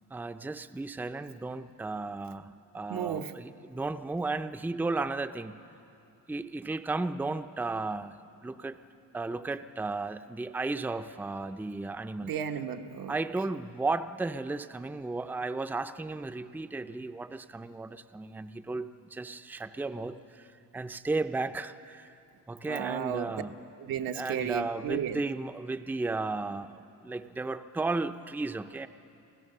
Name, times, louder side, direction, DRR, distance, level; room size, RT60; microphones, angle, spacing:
voice 1, 0.1-5.6 6.3-8.8 9.1-12.3 13.1-22.1 22.5-23.6 24.1-28.9, right 3 dB, 5° right, 9 dB, 0.5 m, -34 dB
voice 2, 2.9-3.3 12.2-13.1 22.6-23.3 23.8-25.2, right 8 dB, 85° right, 5 dB, 1.1 m, -33 dB
28.5 x 15.5 x 6.7 m, 2.7 s
cardioid pair, 120°, 34 cm